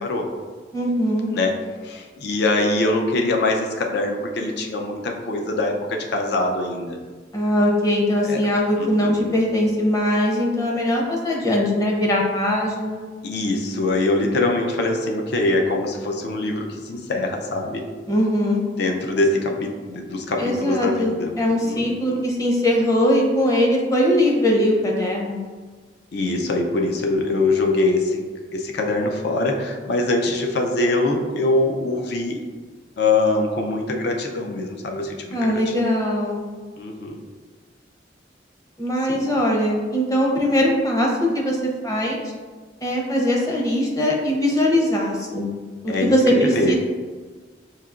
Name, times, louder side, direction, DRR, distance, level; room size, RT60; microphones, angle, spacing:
voice 1, 0.7-1.3 7.3-13.1 18.1-18.6 20.4-25.4 35.3-36.4 38.8-41.6 41.8-42.2 42.8-45.5 45.8-46.8, equal, 20° left, -2 dB, 0.7 m, -21 dB
voice 2, 1.8-7.0 8.2-8.5 8.7-9.3 13.2-17.8 18.8-21.3 21.6-22.2 26.1-28.2 28.5-32.5 33.0-35.7 36.8-37.2 39.1-39.2 45.9-46.8, left 2 dB, 65° left, 2 dB, 0.5 m, -23 dB
5.6 x 2.8 x 2.4 m, 1.4 s
head